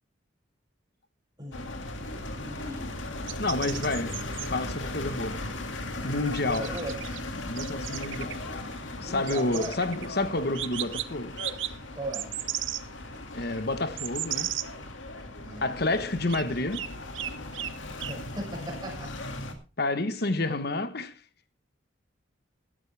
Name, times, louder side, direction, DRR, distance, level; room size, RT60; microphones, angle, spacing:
voice 1, 1.4-1.9 2.3-2.9 6.4-7.0 9.0-9.8 10.3-10.5 11.9-12.3 15.4-16.1 17.9-19.1, right 1 dB, 20° right, 6.2 m, -38 dB
sound 1, 1.5-19.5, left 2 dB, 75° left, 2.2 m, -38 dB
sound 2, 3.3-4.5 6.3-7.2 7.5-8.4 9.3-10.1 10.5-11.1 11.4-11.7 12.1-12.8 13.4-13.5 14.0-14.7 16.3-16.5 16.7-16.9 17.1-17.7 18.0-18.1, right 13 dB, 75° right, 0.8 m, -35 dB
voice 2, 3.4-5.4 6.0-6.7 7.4-8.4 9.0-11.4 13.3-14.5 15.6-16.9 19.8-21.2, left 2 dB, 55° left, 1.2 m, -29 dB
15.5 x 12.5 x 3.4 m
head